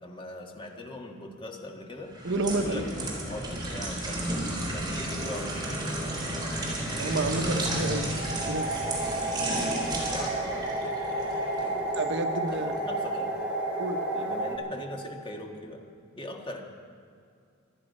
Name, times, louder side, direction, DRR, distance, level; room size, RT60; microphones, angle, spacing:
voice 1, 0.0-2.1 2.5-6.2 10.1-12.0 12.8-13.4 14.1-15.8 16.1-16.6, left 1 dB, 25° left, 2 dB, 1.7 m, -41 dB
sound 1, 2.1-12.0 12.5-12.7, right 1 dB, 20° right, 3.9 m, -33 dB
voice 2, 2.2-2.8 6.9-8.1 8.5-8.7 11.9-12.7 13.8-14.0, right 2 dB, 65° right, 7 dB, 1.1 m, -29 dB
sound 2, 4.5-14.6, right 1 dB, 5° right, 2.6 m, -33 dB
25.0 x 10.0 x 5.5 m, 2.4 s
head